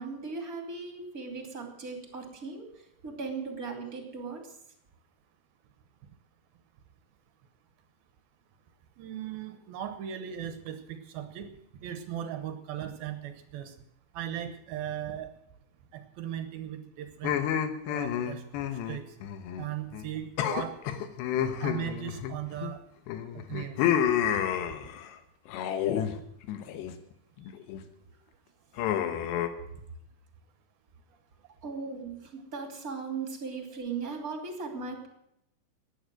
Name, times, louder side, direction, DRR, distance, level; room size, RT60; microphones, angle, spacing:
voice 1, 0.0-4.6 23.2-23.4 28.1-28.2 31.6-35.1, right 4 dB, 25° right, 4 dB, 2.7 m, -38 dB
voice 2, 9.0-11.5 11.8-13.7 14.1-15.3 15.9-17.4 17.9-18.4 18.9-19.0 19.6-20.7 21.6-22.8 23.5-23.8, right 10 dB, 70° right, 9 dB, 2.7 m, -37 dB
sound 1, 17.2-19.7 19.9-20.1 20.4-22.7 23.1-25.1 25.5-26.1 26.4-26.9 27.4-27.8 28.8-29.5, left 9 dB, 85° left, 3.3 m, -30 dB
15.0 x 10.5 x 7.8 m, 0.78 s
omnidirectional pair, 4.9 m